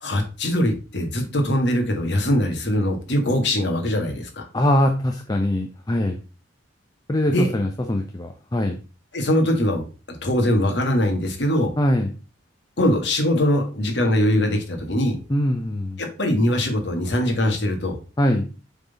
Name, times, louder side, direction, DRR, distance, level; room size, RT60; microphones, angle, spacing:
voice 1, 0.0-4.4 7.3-7.5 9.1-11.7 12.8-15.2 16.0-17.9, left 1 dB, 65° left, 3 dB, 1.6 m, -22 dB
voice 2, 4.5-6.2 7.1-8.8 11.8-12.1 15.3-16.0 18.2-18.5, left 1 dB, 20° left, 4 dB, 0.6 m, -22 dB
7.3 x 3.9 x 4.0 m, 0.34 s
head